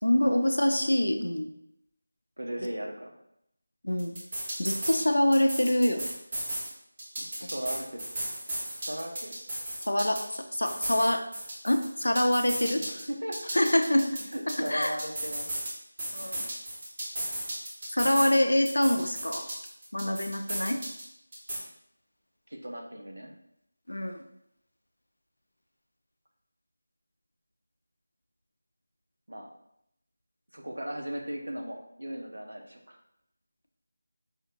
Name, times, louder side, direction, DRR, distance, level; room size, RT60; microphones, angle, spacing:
voice 1, 0.0-1.5 3.8-4.2 4.6-6.1 7.4-7.5 9.9-11.3 11.6-12.8 13.5-14.2 14.7-14.9 16.1-16.4 17.9-19.5 19.9-20.8 23.9-24.2, left 1 dB, 90° left, 6 dB, 0.5 m, -25 dB
voice 2, 2.4-3.1 7.2-8.0 8.7-9.4 12.8-13.4 14.3-15.5 16.2-16.5 22.5-23.3 29.3-29.5 30.5-33.0, equal, 85° right, 1 dB, 0.8 m, -37 dB
sound 1, 4.0-5.0 5.3-6.7 7.0-10.4 10.7-13.0 13.3-15.7 16.0-18.4 18.7-21.0 21.3-21.6, right 1 dB, 35° right, 1.2 m, -35 dB
5.0 x 2.8 x 2.5 m, 0.77 s
figure-of-eight pair, 170°, 0 cm